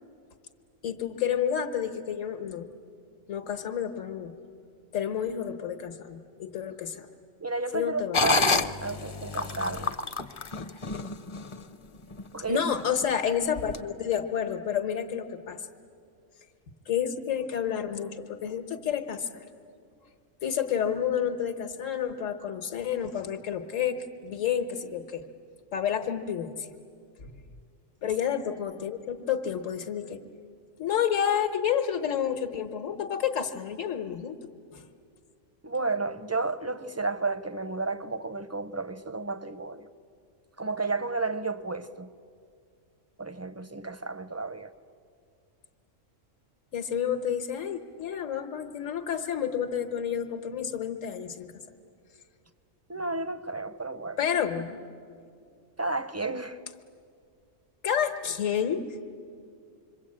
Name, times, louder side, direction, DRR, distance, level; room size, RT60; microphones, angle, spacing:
voice 1, 0.8-2.6 3.3-4.3 4.9-7.1 7.7-8.2 12.5-15.7 16.9-19.5 20.4-25.2 25.7-26.7 27.2-27.3 28.0-30.2 30.8-34.4 34.7-34.9 46.7-51.5 54.2-54.8 57.8-58.8, left 8 dB, 80° left, 1.5 m, -30 dB
voice 2, 7.4-9.9 12.3-12.6 28.0-28.1 35.6-39.9 40.6-42.1 43.2-44.7 52.9-54.2 55.8-56.6, right 3 dB, 20° right, 0.4 m, -32 dB
sound 1, 8.1-11.6 12.1-12.2 12.7-13.1 13.7-13.8, left 3 dB, 35° left, 0.5 m, -28 dB
26.5 x 23.5 x 8.7 m
omnidirectional pair, 1.3 m